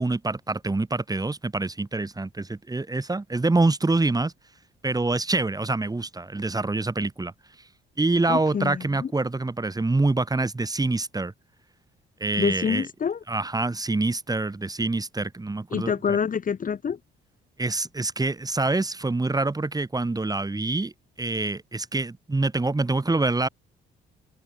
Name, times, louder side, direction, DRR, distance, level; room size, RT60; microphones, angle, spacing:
voice 1, 0.0-4.3 4.8-7.3 8.0-11.3 12.2-12.9 13.3-16.2 17.6-20.9 21.2-23.5, right 2 dB, 20° right, 6.3 m, -26 dB
voice 2, 8.3-9.1 12.4-13.2 15.7-17.0, left 7 dB, 45° left, 1.7 m, -26 dB
cardioid pair, 90°, 20 cm